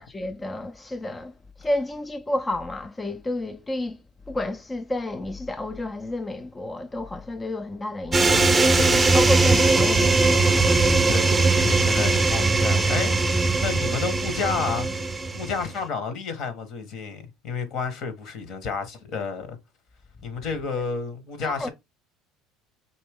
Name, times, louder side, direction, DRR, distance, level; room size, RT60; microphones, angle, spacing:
voice 1, 0.0-4.0 4.3-8.8 9.1-10.2 21.4-21.7, left 1 dB, 15° left, 0.4 m, -30 dB
sound 1, 8.1-15.7, right 3 dB, 15° right, 0.7 m, -20 dB
voice 2, 8.8-9.1 11.1-14.9 15.3-19.6 20.2-21.7, left 5 dB, 60° left, 1.3 m, -31 dB
4.3 x 2.9 x 3.5 m
supercardioid pair, 95°, 0 cm